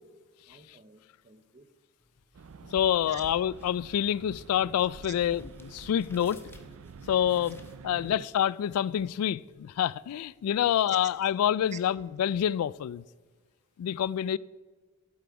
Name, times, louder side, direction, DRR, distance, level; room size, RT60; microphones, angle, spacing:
voice 1, 0.5-1.7 3.1-3.2 5.0-5.1 7.9-8.1 10.6-11.0 11.7-11.8, right 7 dB, 35° right, 0.7 m, -49 dB
sound 1, 2.0-13.0, left 1 dB, 10° left, 0.8 m, -57 dB
sound 2, 2.3-8.3, right 5 dB, 65° right, 0.4 m, -49 dB
voice 2, 2.7-6.4 7.1-13.0 13.8-14.4, left 10 dB, 85° left, 0.3 m, -27 dB
11.5 x 7.8 x 4.7 m
head